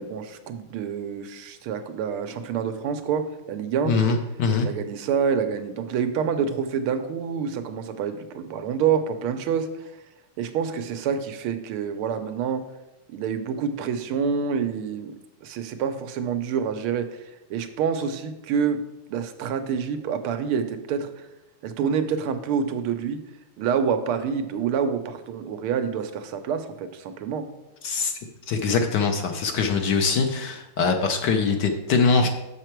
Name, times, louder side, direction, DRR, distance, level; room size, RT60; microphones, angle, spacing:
voice 1, 0.0-4.1 4.6-9.9 10.4-12.6 13.1-15.1 15.4-18.8 19.1-21.3 21.6-23.2 23.6-27.5, right 7 dB, 90° right, 8 dB, 1.6 m, -27 dB
voice 2, 3.9-4.7 27.8-28.1 28.5-32.3, left 4 dB, 65° left, 5 dB, 1.2 m, -22 dB
6.7 x 6.6 x 4.5 m, 1.0 s
omnidirectional pair, 2.3 m